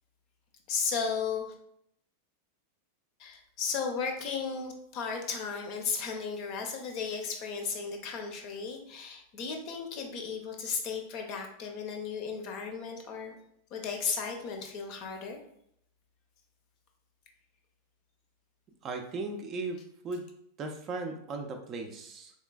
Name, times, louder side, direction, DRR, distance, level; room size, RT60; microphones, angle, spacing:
voice 1, 0.7-1.4 3.2-13.3 13.7-15.4, left 5 dB, 40° left, 3 dB, 0.6 m, -35 dB
voice 2, 18.8-20.3 20.6-22.3, right 3 dB, 30° right, 3 dB, 0.5 m, -37 dB
3.8 x 3.0 x 2.2 m, 0.72 s
figure-of-eight pair, 90°, 0 cm